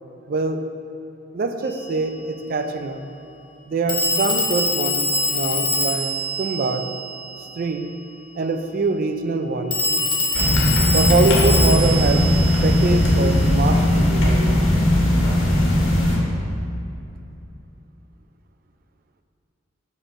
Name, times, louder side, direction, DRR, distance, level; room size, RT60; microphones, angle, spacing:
voice 1, 0.3-0.7 1.3-3.0 3.7-6.1 6.4-6.9 7.6-7.9 8.3-9.8 10.9-14.6, right 3 dB, 45° right, 7 dB, 0.4 m, -24 dB
Telephone, 1.6-1.8 3.9-7.6 9.7-13.4, left 2 dB, 25° left, 0.6 m, -24 dB
sound 1, 10.3-16.2, left 1 dB, 75° left, 1.4 m, -18 dB
5.1 x 4.2 x 6.0 m, 2.7 s
head